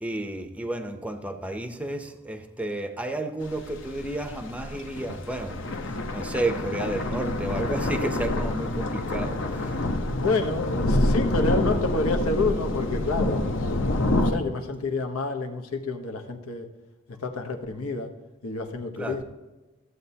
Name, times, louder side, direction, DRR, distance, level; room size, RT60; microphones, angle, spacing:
voice 1, 0.0-9.8 19.0-19.2, right 1 dB, 5° right, 7 dB, 0.6 m, -32 dB
sound 1, 3.4-14.3, left 1 dB, 60° left, 0.8 m, -27 dB
voice 2, 10.1-13.7 14.0-16.7 17.1-18.1 18.4-19.2, left 3 dB, 85° left, 4 dB, 1.0 m, -29 dB
14.0 x 8.0 x 2.8 m, 1.1 s
head